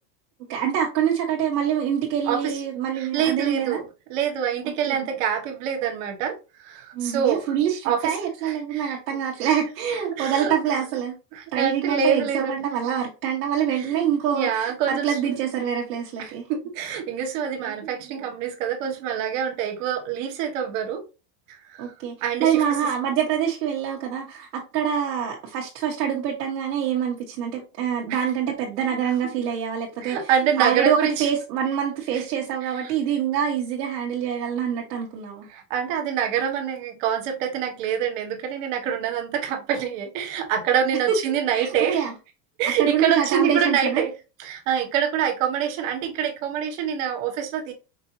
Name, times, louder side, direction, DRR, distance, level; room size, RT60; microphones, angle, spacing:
voice 1, 0.5-3.8 4.6-5.1 6.9-11.1 11.5-16.5 17.7-18.2 21.8-30.2 30.6-35.5 41.5-41.7 41.9-42.1 42.8-44.0, right 8 dB, 90° right, 1.4 m, -25 dB
voice 2, 2.3-2.6 2.9-3.8 4.1-6.4 6.6-7.4 7.8-8.1 8.4-9.0 9.4-9.5 10.1-10.5 11.3-12.5 13.7-15.1 16.2-21.0 21.7-21.9 22.2-22.6 28.1-28.3 30.0-31.3 32.1-32.2 35.5-42.1 42.6-44.1 44.4-47.7, right 8 dB, 50° right, 1.4 m, -26 dB
5.3 x 2.7 x 2.8 m
supercardioid pair, 160°, 48 cm